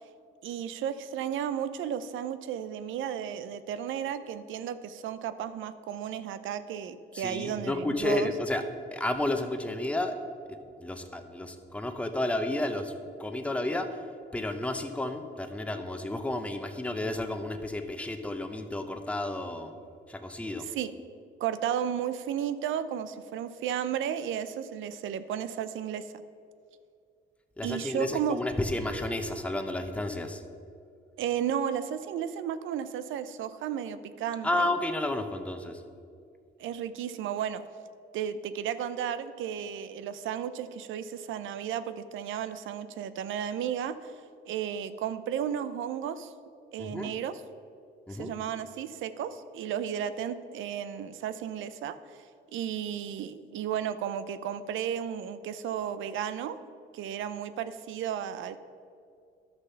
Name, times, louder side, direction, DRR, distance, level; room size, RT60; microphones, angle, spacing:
voice 1, 0.4-8.3 20.7-20.9 21.4-26.1 27.6-28.4 31.2-34.7 36.6-37.6 38.1-44.1 44.5-46.3 46.7-47.4 48.1-52.2 52.5-56.6 56.9-58.6, right 9 dB, 80° right, 13 dB, 0.6 m, -33 dB
voice 2, 7.1-8.6 8.9-10.2 10.8-12.9 13.2-14.0 14.3-19.7 20.1-20.6 27.6-30.4 34.4-35.8 46.8-47.1 48.1-48.3, left 1 dB, 5° left, 6 dB, 0.8 m, -31 dB
11.5 x 6.7 x 5.7 m, 2.4 s
cardioid pair, 90°, 20 cm